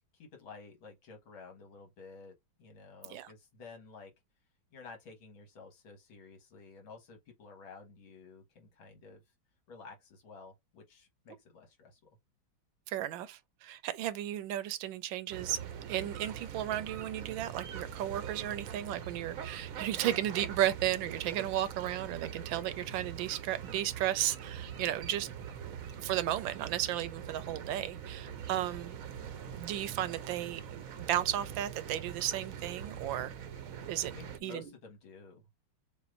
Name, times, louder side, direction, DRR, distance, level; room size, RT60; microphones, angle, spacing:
voice 1, 0.1-4.1 4.7-9.2 9.7-12.0 34.0-35.5, left 4 dB, 80° left, 2.3 m, -52 dB
voice 2, 12.9-15.6 15.9-25.3 26.0-28.9 29.5-30.8 31.1-33.3 33.9-34.1 34.4-34.6, right 12 dB, 75° right, 1.3 m, -34 dB
sound 1, 15.3-34.4, right 8 dB, 60° right, 0.9 m, -43 dB
6.8 x 2.5 x 2.5 m
omnidirectional pair, 2.2 m